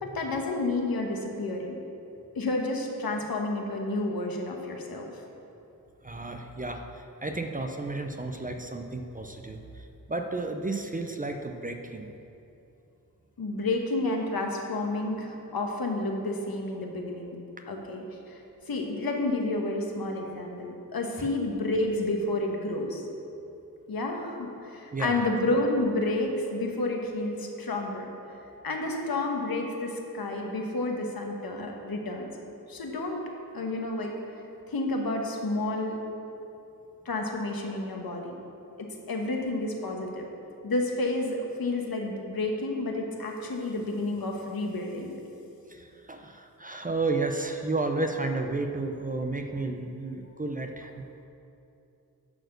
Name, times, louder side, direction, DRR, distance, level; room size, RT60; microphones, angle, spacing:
voice 1, 0.0-1.8 2.3-5.1 13.4-17.4 17.7-18.4 18.7-23.0 23.9-28.1 28.6-32.3 32.7-33.2 33.5-34.1 34.7-36.0 37.0-38.3 38.8-40.3 40.6-45.1, left 2 dB, 75° left, 2 dB, 1.2 m, -30 dB
voice 2, 6.0-12.1 21.2-21.3 24.9-25.3 45.7-51.1, right 3 dB, 25° right, 5 dB, 0.5 m, -32 dB
10.5 x 4.3 x 6.6 m, 2.8 s
wide cardioid pair, 125°, 36 cm